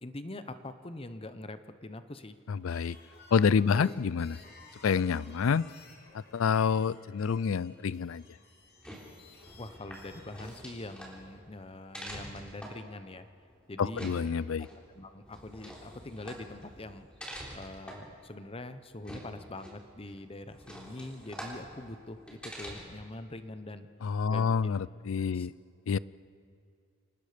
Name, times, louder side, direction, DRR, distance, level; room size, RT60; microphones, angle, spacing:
voice 1, 0.0-2.4 3.7-3.9 9.6-13.3 13.7-14.3 14.7-17.1 17.5-23.9 24.3-24.8 25.3-25.5, left 2 dB, 30° left, 11 dB, 0.9 m, -44 dB
voice 2, 2.5-3.0 3.3-4.4 4.8-5.7 6.1-8.2 13.8-14.7 24.0-25.5 25.9-26.0, left 6 dB, 75° left, 21 dB, 0.4 m, -28 dB
sound 1, 2.6-10.6, left 3 dB, 55° left, 2.5 m, -56 dB
sound 2, 8.6-23.1, equal, 5° left, 3.7 m, -47 dB
27.0 x 19.0 x 5.1 m, 2.4 s
head